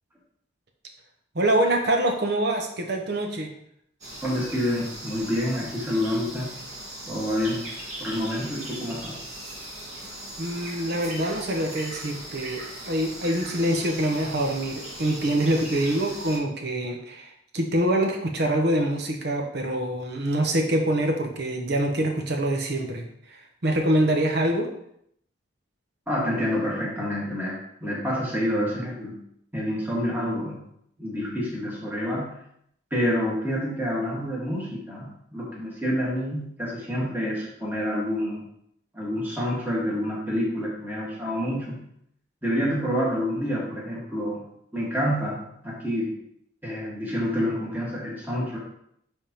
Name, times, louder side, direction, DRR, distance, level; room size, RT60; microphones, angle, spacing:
voice 1, 1.3-3.5 10.0-24.7, right 1 dB, 55° right, 3 dB, 0.8 m, -25 dB
sound 1, 4.0-16.4, right 1 dB, 35° right, 1.7 m, -39 dB
voice 2, 4.2-6.5 7.1-7.6 8.0-9.2 26.1-29.1 29.5-30.6 31.0-32.4 32.9-38.4 38.9-41.8 42.4-44.4 44.7-45.4 45.6-46.1 46.6-48.6, equal, 10° right, -5 dB, 1.6 m, -28 dB
10.5 x 3.6 x 2.9 m, 0.72 s
head